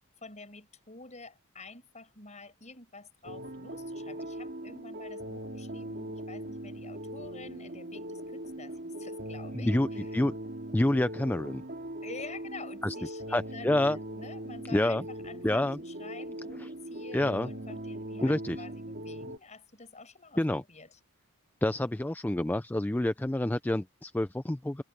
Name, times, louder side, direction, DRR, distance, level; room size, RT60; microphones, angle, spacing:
voice 1, 0.2-10.2 12.0-21.0, left 3 dB, 30° left, 5.2 m, -48 dB
sound 1, 3.2-19.4, right 1 dB, 50° right, 2.2 m, -40 dB
voice 2, 9.5-10.4 10.7-11.6 12.8-12.9 13.3-14.0 14.7-15.0 15.4-15.8 16.6-16.7 17.1-17.5 18.2-18.6 20.4-20.6 21.6-24.8, left 1 dB, 10° left, 0.4 m, -28 dB
head